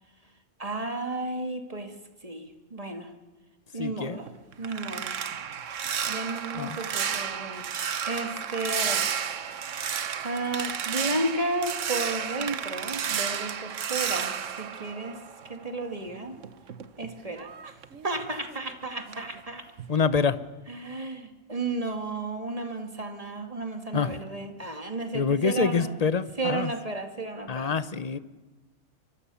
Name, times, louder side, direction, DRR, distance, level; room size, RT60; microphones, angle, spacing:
voice 1, 0.6-1.9 2.2-2.5 2.7-3.1 3.7-4.3 4.6-5.1 6.1-7.6 8.1-9.1 10.2-15.2 15.5-16.4 17.0-17.7 18.0-19.6 20.7-25.9 26.4-27.7, right 2 dB, 30° right, 5 dB, 2.4 m, -33 dB
voice 2, 3.8-4.2 6.5-6.8 19.9-20.4 23.9-24.1 25.1-26.7 27.5-28.2, left 5 dB, 35° left, 14 dB, 0.9 m, -26 dB
sound 1, 4.1-15.7 16.1-18.7 19.1-19.4 19.8-20.0, right 8 dB, 85° right, 1.4 m, -32 dB
25.0 x 23.5 x 7.1 m, 1.2 s
omnidirectional pair, 1.2 m